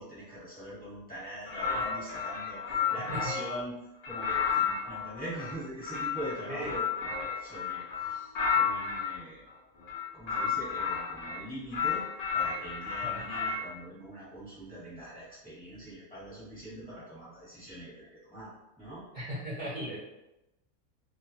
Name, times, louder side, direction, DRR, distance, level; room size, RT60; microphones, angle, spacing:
voice 1, 0.0-3.8 4.0-6.9 7.1-9.4 10.1-12.0 12.3-19.0, right 1 dB, 5° left, -9 dB, 0.9 m, -43 dB
sound 1, 1.5-3.6 4.0-9.1 9.8-11.4 11.7-13.7, left 6 dB, 55° left, 0.7 m, -32 dB
voice 2, 19.1-20.0, equal, 50° right, -8 dB, 0.5 m, -37 dB
2.4 x 2.4 x 2.8 m, 0.93 s
omnidirectional pair, 1.5 m